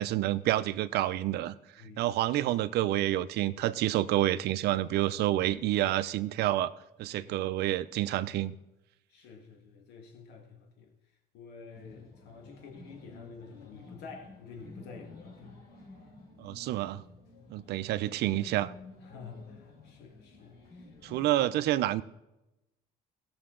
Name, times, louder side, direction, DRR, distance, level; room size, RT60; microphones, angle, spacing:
voice 1, 0.0-1.6 2.0-6.7 7.0-8.5 16.4-17.0 17.5-18.7 21.0-22.0, right 14 dB, 80° right, 0.6 m, -28 dB
voice 2, 1.8-2.2 7.1-7.7 9.1-15.6 16.4-16.5 19.0-21.7, left 5 dB, 90° left, 1.7 m, -50 dB
sound 1, 11.7-21.4, left 3 dB, 65° left, 4.5 m, -52 dB
17.5 x 7.0 x 3.8 m
cardioid pair, 110°, 17 cm